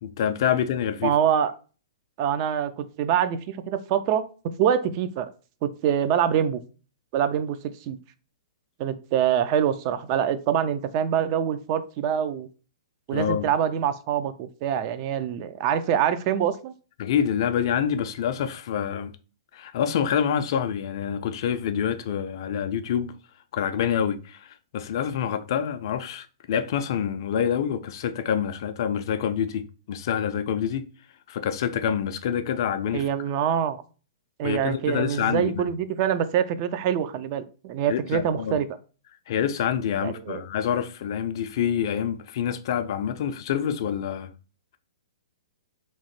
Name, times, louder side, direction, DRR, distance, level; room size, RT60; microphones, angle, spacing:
voice 1, 0.0-1.1 13.1-13.5 17.0-19.1 19.5-23.2 23.5-30.9 31.3-33.1 34.4-35.7 37.9-38.6 39.3-44.3, left 8 dB, 55° left, 0.3 m, -27 dB
voice 2, 1.0-1.5 2.2-4.2 4.6-5.3 5.6-6.6 7.1-7.6 7.9-8.0 8.8-12.5 13.1-16.7 32.9-33.8 34.4-38.7 40.0-40.4, right 9 dB, 40° right, 0.3 m, -25 dB
2.9 x 2.1 x 3.0 m
hypercardioid pair, 125°, 3 cm